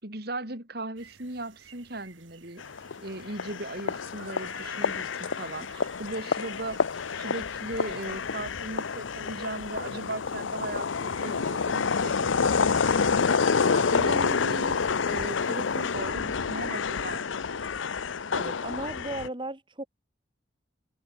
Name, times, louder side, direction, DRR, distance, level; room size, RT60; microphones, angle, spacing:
voice 1, 0.0-2.6 3.0-13.4 13.9-17.6, right 2 dB, 55° right, 3.8 m, -38 dB
sound 1, 1.0-15.9, right 4 dB, 85° right, 7.2 m, -51 dB
sound 2, 2.6-19.3, left 5 dB, 85° left, 0.7 m, -28 dB
voice 2, 18.3-19.9, right 1 dB, 25° right, 1.9 m, -36 dB
head